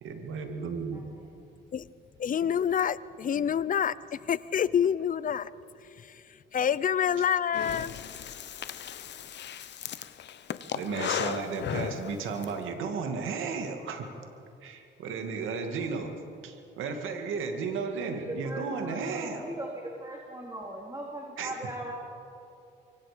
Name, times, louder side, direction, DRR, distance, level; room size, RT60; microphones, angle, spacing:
voice 1, 0.0-1.1 2.4-2.5 10.7-14.1 14.6-16.2 16.4-19.4 21.4-21.5, right 5 dB, 85° right, 5 dB, 2.2 m, -34 dB
voice 2, 0.9-1.4 18.0-21.9, right 1 dB, 15° right, -2 dB, 3.6 m, -39 dB
voice 3, 2.2-5.5 6.0-6.2 6.5-7.9, left 8 dB, 45° left, 18 dB, 0.6 m, -27 dB
Breathing, 7.5-12.5, left 9 dB, 60° left, 1.0 m, -36 dB
26.0 x 23.0 x 5.2 m, 2.6 s
cardioid pair, 90°, 20 cm